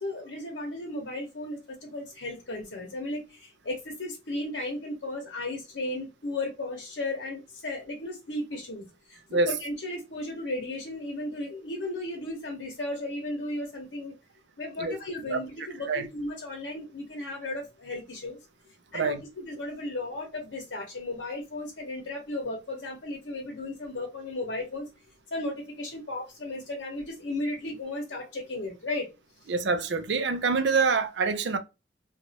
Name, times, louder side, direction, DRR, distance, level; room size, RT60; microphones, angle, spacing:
voice 1, 0.0-9.2 9.5-14.2 14.6-18.4 18.9-24.9 25.3-29.1, left 2 dB, 75° left, 0.8 m, -35 dB
voice 2, 29.5-31.6, right 4 dB, 70° right, 0.5 m, -25 dB
3.0 x 2.4 x 2.8 m
head